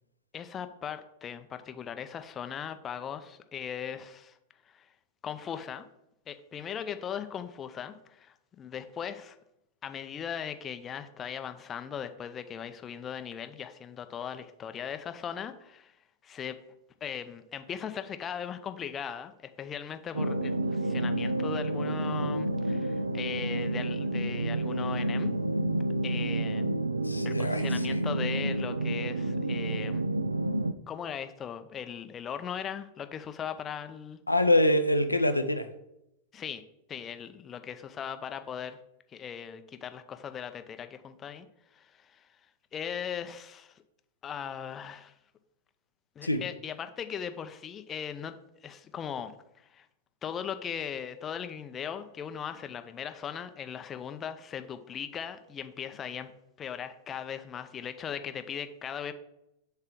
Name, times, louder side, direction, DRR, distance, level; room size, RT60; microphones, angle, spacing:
voice 1, 0.3-4.4 4.7-4.9 5.2-5.9 6.3-9.4 9.8-15.9 16.2-16.6 17.0-19.3 19.6-25.3 26.0-26.7 27.2-30.0 30.9-34.2 36.3-36.6 36.9-38.8 39.1-41.5 41.7-42.3 42.7-43.8 44.2-45.1 46.2-48.4 48.6-49.3 49.6-49.9 50.2-56.3 56.6-59.1, left 8 dB, 25° left, 9 dB, 0.5 m, -38 dB
sound 1, 20.1-30.7, right 1 dB, 80° right, 0.3 m, -30 dB
voice 2, 27.0-28.0 34.3-35.7 46.2-46.4, left 1 dB, 85° left, 8 dB, 0.5 m, -25 dB
7.3 x 3.3 x 6.1 m, 0.84 s
figure-of-eight pair, 90°, 0 cm